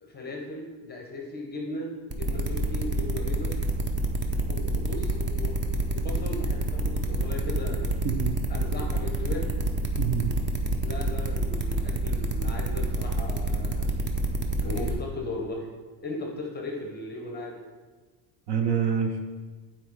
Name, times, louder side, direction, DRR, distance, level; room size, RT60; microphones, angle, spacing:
voice 1, 0.0-3.5 4.5-7.9 8.5-9.6 10.8-13.9 14.6-15.7 16.0-17.6, left 2 dB, 20° left, 0 dB, 0.8 m, -37 dB
sound 1, 2.1-14.9, right 2 dB, 25° right, 0.6 m, -27 dB
voice 2, 8.0-8.4 10.0-10.3 18.5-19.2, right 7 dB, 50° right, 5 dB, 0.8 m, -26 dB
9.3 x 4.4 x 4.7 m, 1.4 s
cardioid pair, 160°, 50 cm